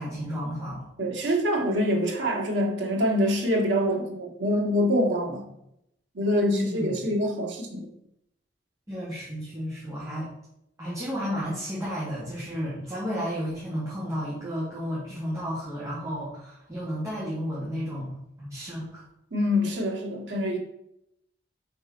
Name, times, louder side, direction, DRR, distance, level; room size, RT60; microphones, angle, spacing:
voice 1, 0.0-0.9 6.4-7.0 8.9-10.3 10.8-18.1 18.4-19.0, equal, 15° right, -8 dB, 1.7 m, -32 dB
voice 2, 1.0-5.4 6.1-7.9 19.3-20.6, equal, 80° right, -1 dB, 1.7 m, -25 dB
5.4 x 4.2 x 5.1 m, 0.80 s
head